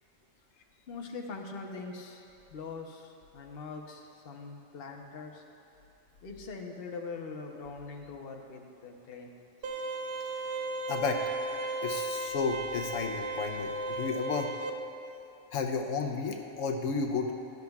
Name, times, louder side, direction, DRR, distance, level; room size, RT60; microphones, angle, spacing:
voice 1, 0.9-5.4 6.2-9.3, left 4 dB, 50° left, 2 dB, 1.0 m, -42 dB
sound 1, 9.6-14.7, right 2 dB, 55° right, 0.7 m, -35 dB
voice 2, 10.9-11.2 11.8-14.5 15.5-17.3, left 4 dB, 85° left, 3 dB, 1.1 m, -32 dB
16.5 x 12.0 x 2.4 m, 2.9 s
omnidirectional pair, 1.3 m